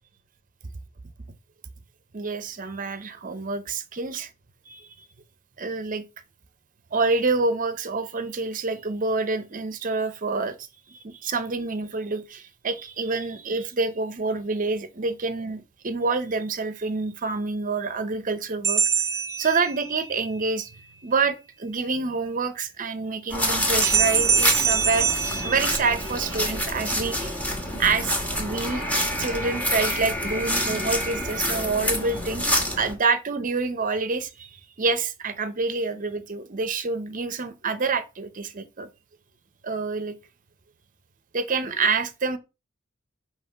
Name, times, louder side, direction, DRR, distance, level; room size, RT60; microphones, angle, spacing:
voice 1, 2.1-4.3 4.7-5.1 5.6-6.0 6.9-18.8 19.3-20.7 21.0-27.4 27.8-28.9 29.2-32.5 32.8-38.9 39.6-40.1 41.3-42.4, right 4 dB, 40° right, 0.7 m, -27 dB
sound 1, 18.6-20.2 23.8-26.3, right 6 dB, 15° right, 0.3 m, -24 dB
sound 2, 23.3-32.9, equal, 5° left, 1.5 m, -27 dB
5.5 x 3.1 x 5.5 m
head